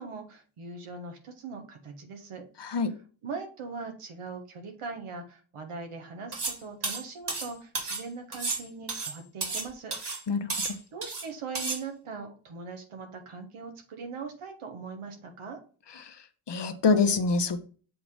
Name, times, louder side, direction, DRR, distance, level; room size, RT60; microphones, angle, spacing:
voice 1, 0.0-2.4 3.2-9.9 10.6-15.6, right 4 dB, 85° right, 4 dB, 1.6 m, -41 dB
voice 2, 2.6-2.9 10.3-10.5 16.0-16.1 16.5-17.6, left 4 dB, 55° left, 8 dB, 1.1 m, -25 dB
sound 1, 6.3-6.6 6.8-8.0 8.3-9.7 9.9-10.2 10.5-11.3 11.6-11.8, right 3 dB, 50° right, 2.5 m, -32 dB
7.6 x 2.9 x 5.5 m, 0.39 s
supercardioid pair, 45°, 50 cm